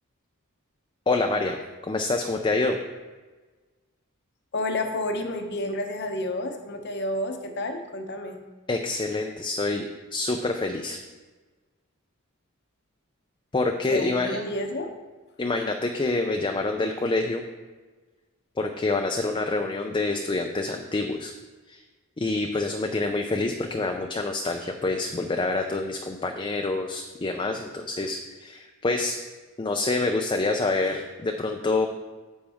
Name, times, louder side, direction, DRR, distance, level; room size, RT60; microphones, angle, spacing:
voice 1, 1.1-2.8 8.7-11.0 13.5-14.4 15.4-17.4 18.6-21.3 21.7-21.8 22.2-29.2 29.6-31.9, left 3 dB, 25° left, 4 dB, 0.5 m, -27 dB
voice 2, 4.5-8.4 13.9-14.9, left 1 dB, 50° left, 5 dB, 0.9 m, -30 dB
9.6 x 7.3 x 3.6 m, 1.3 s
head